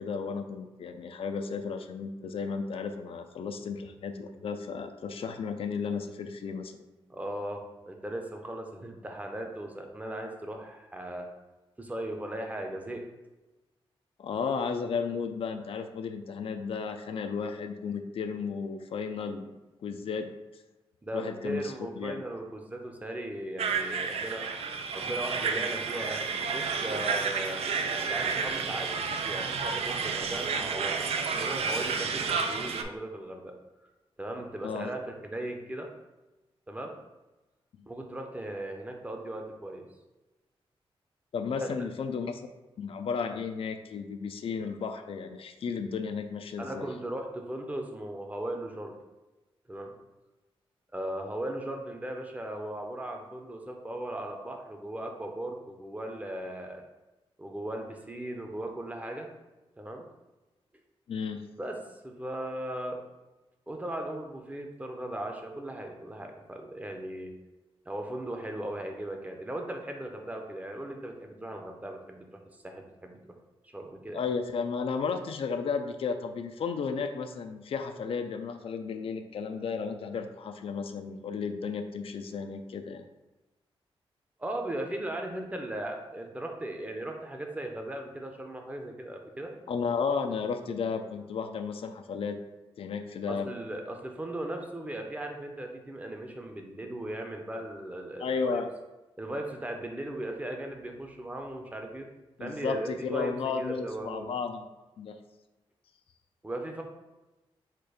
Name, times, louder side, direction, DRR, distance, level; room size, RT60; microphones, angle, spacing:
voice 1, 0.0-6.8 14.2-19.5 19.8-20.3 21.1-22.2 34.6-34.9 37.8-37.9 41.3-42.4 42.8-46.9 61.1-61.4 74.1-83.0 89.7-92.4 92.8-93.5 98.2-98.7 102.4-104.6 105.0-105.2, left 5 dB, 70° left, 6 dB, 0.4 m, -33 dB
voice 2, 7.1-11.3 11.8-13.1 21.0-24.5 24.9-26.2 26.5-27.6 28.0-28.9 29.2-31.1 31.4-33.5 34.2-35.9 36.7-36.9 37.9-39.9 41.6-41.8 46.6-48.9 49.7-49.9 50.9-56.8 57.4-59.3 59.8-60.1 61.6-63.0 63.7-67.3 67.9-73.4 73.6-74.2 84.4-89.5 93.3-98.6 99.2-102.1 102.4-104.3 106.4-106.8, right 1 dB, 15° right, 3 dB, 0.6 m, -37 dB
sound 1, 23.6-32.8, right 5 dB, 85° right, 0.4 m, -31 dB
4.4 x 2.5 x 4.8 m, 1.1 s
wide cardioid pair, 120°, 10 cm